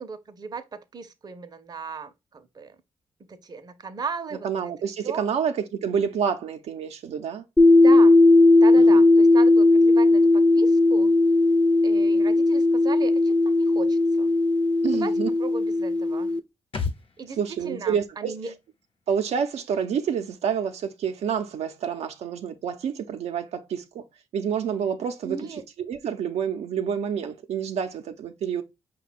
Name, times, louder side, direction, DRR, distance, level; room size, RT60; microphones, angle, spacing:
voice 1, 0.0-2.8 3.3-4.7 5.0-5.2 7.8-8.2 8.6-11.2 11.8-14.3 14.8-15.1 15.4-16.3 17.2-18.5 25.2-25.6, right 5 dB, 40° right, 0.6 m, -36 dB
voice 2, 4.4-7.4 8.8-9.0 14.8-15.3 17.4-18.4 19.1-24.0 24.3-25.4 25.9-28.6, right 7 dB, 85° right, 0.5 m, -28 dB
sound 1, 7.6-16.4, left 2 dB, 10° left, 0.5 m, -17 dB
sound 2, 16.7-20.3 20.5-20.6, left 5 dB, 55° left, 0.9 m, -38 dB
5.2 x 2.2 x 4.0 m
cardioid pair, 90°, 11 cm